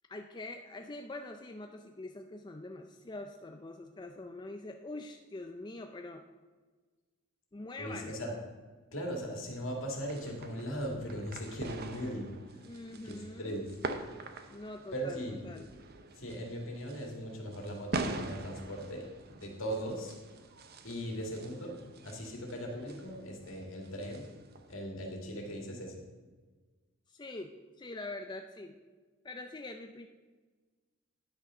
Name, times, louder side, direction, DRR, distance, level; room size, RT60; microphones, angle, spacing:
voice 1, 0.1-6.2 7.5-8.2 12.6-13.6 14.5-15.7 21.2-21.4 27.1-28.8 29.2-30.1, left 2 dB, 20° left, 4 dB, 0.4 m, -44 dB
voice 2, 7.8-8.3 8.9-12.6 13.0-13.7 14.9-15.4 16.2-20.2 20.8-21.7 22.0-24.3 24.7-26.0, equal, 65° left, 0 dB, 2.3 m, -39 dB
sound 1, 9.9-24.8, right 3 dB, 50° right, 0.8 m, -44 dB
10.5 x 6.2 x 5.5 m, 1.4 s
head